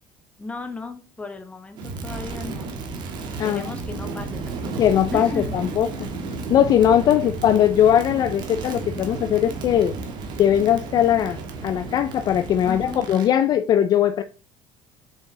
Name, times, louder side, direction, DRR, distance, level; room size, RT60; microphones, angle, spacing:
voice 1, 0.4-2.7 3.4-4.7 5.1-5.7 6.0-6.1 7.1-7.4 12.6-13.0, left 3 dB, 15° left, 1.2 m, -36 dB
Crackle, 1.8-13.3, right 3 dB, 55° right, 1.4 m, -33 dB
voice 2, 4.8-6.1 6.5-9.9 10.4-14.2, left 10 dB, 45° left, 0.4 m, -20 dB
6.4 x 4.8 x 3.7 m
cardioid pair, 120°, 9 cm